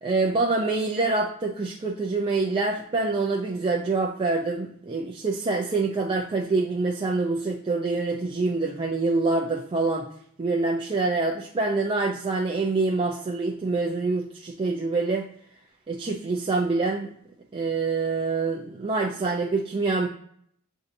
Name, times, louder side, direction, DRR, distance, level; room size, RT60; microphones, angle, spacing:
voice 1, 0.0-10.1 10.4-15.3 15.9-17.1 17.5-20.1, right 3 dB, 25° right, 0 dB, 0.4 m, -26 dB
7.3 x 2.6 x 2.6 m, 0.65 s
head